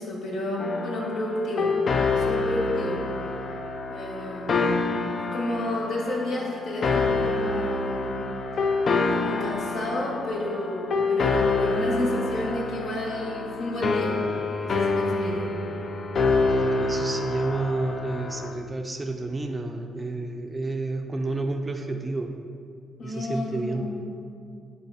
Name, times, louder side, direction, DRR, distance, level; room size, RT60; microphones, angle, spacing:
voice 1, 0.0-1.7 2.1-3.0 3.9-8.1 9.1-14.2 14.6-15.5 23.0-24.1, left 1 dB, 75° left, -3 dB, 1.8 m, -31 dB
sound 1, 0.6-18.6, left 3 dB, 50° left, 0.6 m, -27 dB
voice 2, 16.5-22.4 23.0-23.8, right 2 dB, 20° right, 5 dB, 0.5 m, -30 dB
11.0 x 3.9 x 4.2 m, 2.4 s
cardioid pair, 90°, 0 cm